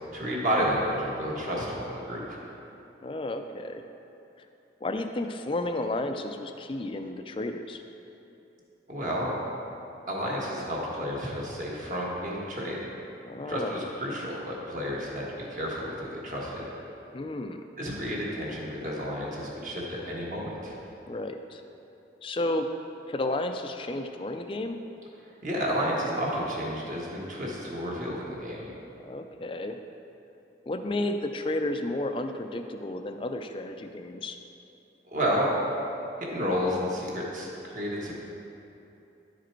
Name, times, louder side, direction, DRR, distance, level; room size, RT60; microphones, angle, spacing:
voice 1, 0.1-2.4 8.9-9.3 10.1-12.8 13.4-16.6 17.8-20.8 25.4-28.7 35.1-35.5 36.2-38.2, equal, 45° right, -4 dB, 1.5 m, -31 dB
voice 2, 3.0-3.8 4.8-7.8 13.2-13.7 17.1-17.6 21.1-21.6 22.2-22.7 23.1-24.8 29.0-29.8 30.7-34.4, left 2 dB, 30° left, 7 dB, 0.4 m, -32 dB
10.5 x 4.9 x 4.5 m, 2.9 s
head